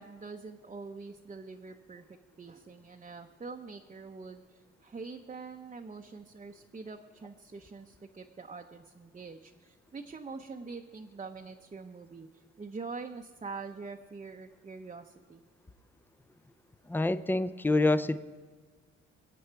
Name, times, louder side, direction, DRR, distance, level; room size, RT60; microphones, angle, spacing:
voice 1, 0.0-15.4, right 4 dB, 25° right, 2 dB, 0.7 m, -45 dB
voice 2, 16.9-18.2, left 2 dB, 5° left, 14 dB, 0.5 m, -26 dB
22.0 x 8.5 x 4.6 m, 1.5 s
cardioid pair, 90°, 30 cm